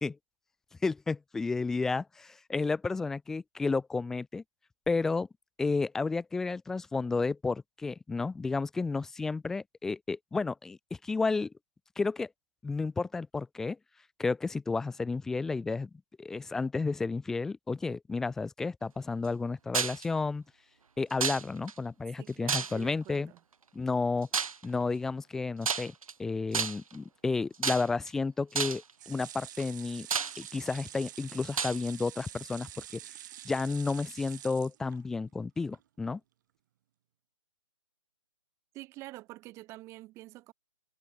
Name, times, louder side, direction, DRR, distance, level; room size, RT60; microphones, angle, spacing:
voice 1, 0.8-4.4 4.9-5.3 5.6-11.5 12.0-12.3 12.6-13.8 14.2-15.9 16.2-20.4 21.0-23.3 23.7-24.3 24.6-25.9 26.2-30.1 30.4-33.0 33.4-36.2, left 4 dB, 5° left, 0.5 m, -32 dB
sound 1, 19.7-20.1 21.2-21.7 22.5-23.0 24.3-24.6 25.6-26.1 26.5-26.9 27.6-28.1 28.5-28.9 29.6-29.7 30.1-30.8 31.6-31.8, right 5 dB, 85° right, 1.3 m, -31 dB
voice 2, 22.2-23.4 38.7-40.5, right 18 dB, 15° right, 2.1 m, -47 dB
sound 2, 29.0-35.3 35.7-35.8 36.1-36.2, right 13 dB, 35° right, 2.6 m, -47 dB
hypercardioid pair, 160°, 17 cm